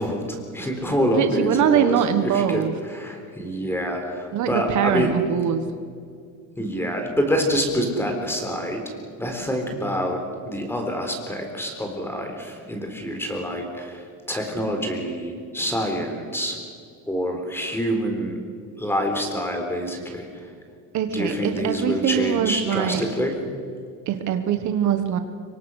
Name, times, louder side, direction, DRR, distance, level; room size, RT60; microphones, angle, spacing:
voice 1, 0.0-5.2 6.6-8.9 9.2-16.6 17.1-18.4 18.8-20.5 21.1-23.4, equal, 5° left, 3 dB, 4.0 m, -26 dB
voice 2, 1.1-2.7 4.3-5.6 20.9-23.0 24.1-25.2, right 9 dB, 50° right, 8 dB, 1.5 m, -22 dB
26.0 x 24.0 x 6.5 m, 2.2 s
cardioid pair, 155°, 36 cm